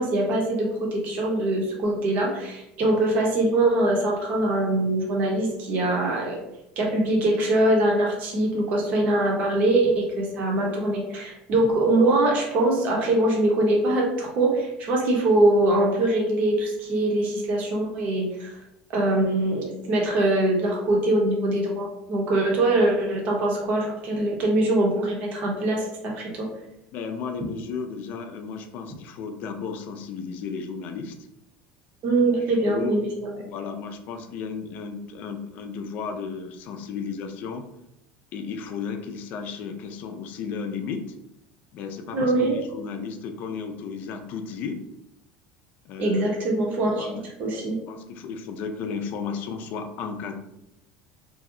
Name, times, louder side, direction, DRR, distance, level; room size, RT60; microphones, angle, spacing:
voice 1, 0.0-6.4 6.8-18.5 18.9-26.5 32.0-33.4 42.1-42.6 46.0-47.8, right 1 dB, 45° right, -2 dB, 0.8 m, -23 dB
voice 2, 26.9-31.1 32.7-33.0 33.4-37.6 38.3-41.1 41.7-44.8 45.8-46.3 47.0-47.2 47.9-50.4, left 5 dB, 45° left, 6 dB, 0.4 m, -34 dB
2.6 x 2.1 x 3.6 m, 0.85 s
cardioid pair, 150°, 4 cm